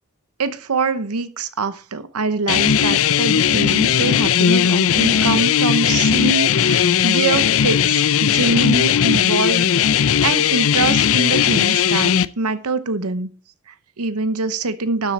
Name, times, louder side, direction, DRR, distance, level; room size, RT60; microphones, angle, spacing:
voice 1, 0.4-13.3 13.7-15.1, right 3 dB, 90° right, 0.9 m, -24 dB
sound 1, 2.5-12.3, left 8 dB, 65° left, 0.5 m, -17 dB
12.5 x 7.5 x 4.3 m
head